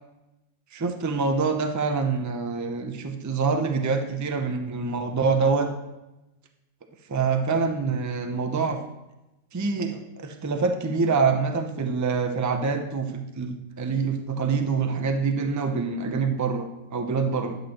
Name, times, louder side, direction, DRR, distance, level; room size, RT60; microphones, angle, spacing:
voice 1, 0.7-5.7 7.1-8.8 9.5-17.6, right 4 dB, 30° right, 5 dB, 0.3 m, -26 dB
10.5 x 7.7 x 2.9 m, 0.97 s
omnidirectional pair, 1.4 m